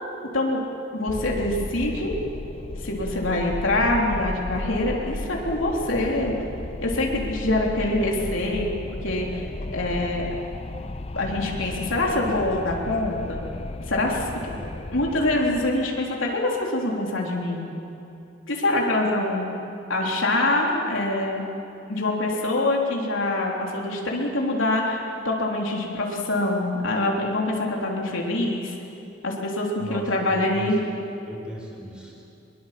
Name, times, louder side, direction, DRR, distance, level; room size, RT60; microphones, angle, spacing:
voice 1, 0.9-2.1 2.8-6.3 6.8-8.7 9.0-9.5 9.7-10.3 11.1-13.4 13.9-14.3 14.9-17.7 18.5-19.6 19.9-21.4 21.9-28.7 29.2-30.8, left 2 dB, 75° left, -1 dB, 3.7 m, -25 dB
Wind, 1.1-16.4, left 2 dB, 30° left, 0.5 m, -34 dB
voice 2, 29.8-30.9 31.2-32.2, equal, 5° right, -2 dB, 4.4 m, -38 dB
23.5 x 22.0 x 7.7 m, 2.8 s
head